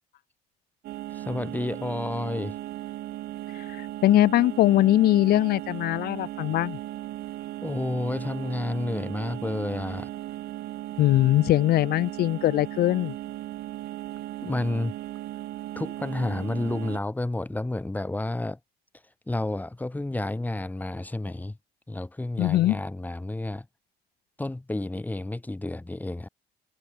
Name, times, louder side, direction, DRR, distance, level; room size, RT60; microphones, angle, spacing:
sound 1, 0.8-17.0, right 15 dB, 70° right, 1.3 m, -37 dB
voice 1, 1.1-2.6 7.6-10.1 14.4-14.9 15.8-18.6 19.3-21.6 21.9-23.7 24.4-26.3, left 2 dB, 10° left, 2.6 m, -30 dB
voice 2, 3.5-6.8 11.0-13.2 22.4-22.8, left 15 dB, 65° left, 0.8 m, -21 dB
cardioid pair, 110°, 17 cm